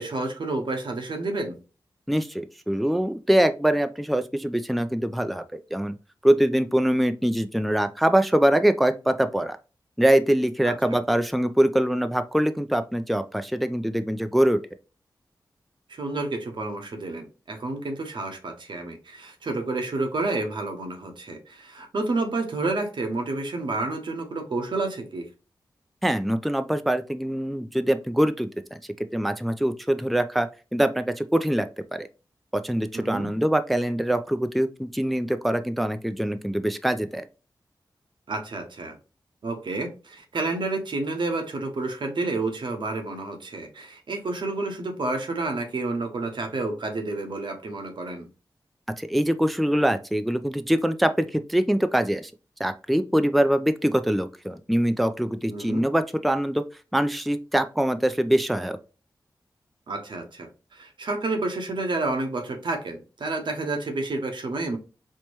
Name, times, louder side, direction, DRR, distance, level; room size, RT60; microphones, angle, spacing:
voice 1, 0.0-1.6 10.7-11.0 15.9-25.2 32.9-33.3 38.3-39.0 39.4-48.3 55.5-55.9 59.9-64.8, right 2 dB, 75° right, 3 dB, 0.8 m, -30 dB
voice 2, 2.1-6.0 6.2-9.6 10.0-14.6 26.0-28.8 29.1-31.7 31.9-32.1 32.6-37.2 49.0-52.3 52.6-56.6 56.9-58.8, right 1 dB, ahead, 9 dB, 0.3 m, -23 dB
4.4 x 2.1 x 3.0 m, 0.32 s
cardioid pair, 60°, 8 cm